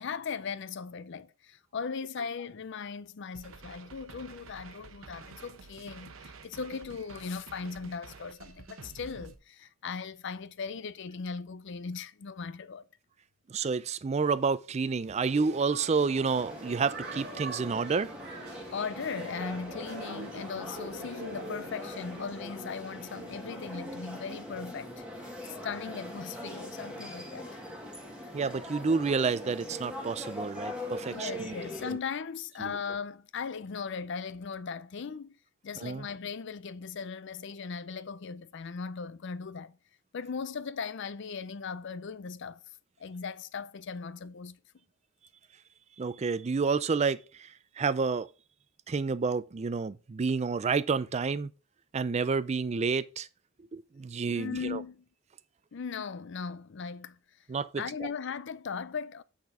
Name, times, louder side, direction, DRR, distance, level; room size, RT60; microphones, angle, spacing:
voice 1, 0.0-12.9 18.7-24.9 25.2-27.6 31.1-35.4 35.6-39.8 40.1-42.6 43.0-44.6 54.3-55.0 55.7-57.2 57.8-59.2, left 5 dB, 60° left, 0.5 m, -38 dB
sound 1, 3.3-9.4, right 4 dB, 80° right, 0.8 m, -50 dB
voice 2, 13.5-18.1 28.3-31.5 32.6-32.7 35.8-36.1 46.0-48.3 48.9-51.5 51.9-53.3 53.7-54.8 57.5-57.8, right 5 dB, 30° right, 0.4 m, -29 dB
sound 2, 15.2-22.3, right 3 dB, 50° right, 1.3 m, -44 dB
sound 3, 16.3-32.0, left 1 dB, 5° right, 1.7 m, -42 dB
8.2 x 4.3 x 4.8 m
head